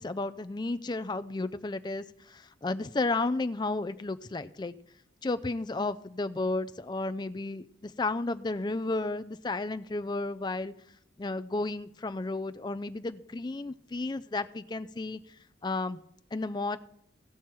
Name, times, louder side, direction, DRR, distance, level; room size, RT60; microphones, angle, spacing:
voice 1, 0.0-4.7 5.2-10.7 11.2-15.2 15.6-16.0 16.3-16.8, left 2 dB, 25° left, 11 dB, 0.4 m, -33 dB
17.5 x 5.9 x 4.6 m, 0.70 s
head